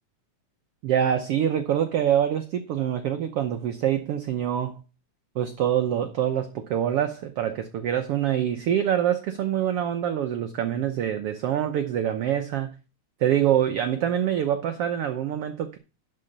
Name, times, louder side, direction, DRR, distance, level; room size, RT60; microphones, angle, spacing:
voice 1, 0.8-4.8 5.3-12.7 13.2-15.8, right 10 dB, 80° right, 1.3 m, -25 dB
11.5 x 4.4 x 6.5 m
omnidirectional pair, 3.6 m